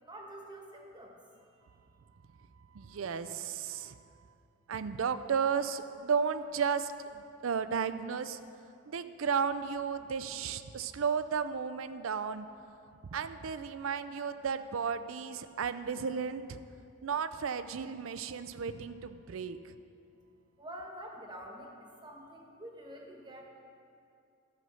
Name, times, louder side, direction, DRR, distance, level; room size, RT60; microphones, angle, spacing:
voice 1, 0.0-1.6 20.6-23.5, right 1 dB, 20° right, 0 dB, 1.2 m, -47 dB
voice 2, 2.7-4.0 4.7-8.4 8.9-12.5 13.1-16.6 17.0-19.7, right 6 dB, 70° right, 12 dB, 0.4 m, -34 dB
13.0 x 5.7 x 6.2 m, 2.5 s
head